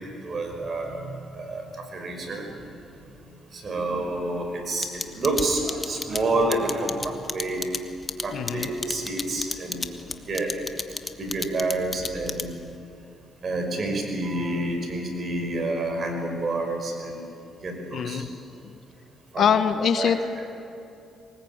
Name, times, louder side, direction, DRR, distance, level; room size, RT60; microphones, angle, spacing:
voice 1, 0.0-2.5 3.5-7.7 8.2-10.0 10.3-10.6 11.2-12.5 13.4-17.3 17.6-18.2 19.3-19.5 20.0-20.1, right 2 dB, 45° right, 3 dB, 5.7 m, -29 dB
sound 1, 4.8-12.7, left 3 dB, 25° left, 1.3 m, -31 dB
voice 2, 8.3-8.7 10.0-10.1 12.5-12.6 17.9-18.3 18.7-18.8 19.4-20.2, left 7 dB, 60° left, 9 dB, 1.5 m, -24 dB
23.0 x 20.0 x 9.0 m, 2.7 s
cardioid pair, 90°, 0 cm